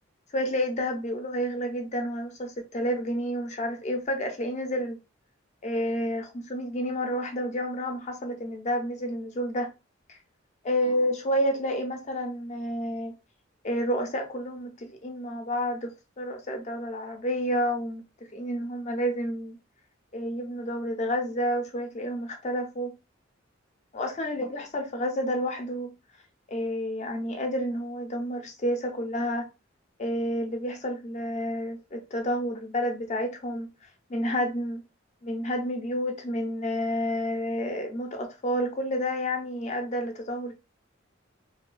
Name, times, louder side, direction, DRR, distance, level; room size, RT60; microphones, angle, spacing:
voice 1, 0.3-5.0 5.6-9.7 10.1-10.2 10.6-13.1 13.6-18.0 18.3-19.6 20.1-22.9 23.9-25.9 26.5-29.5 30.0-33.7 34.1-34.8 35.2-40.5, equal, 35° left, 0.6 m, -30 dB
2.7 x 2.2 x 2.4 m
head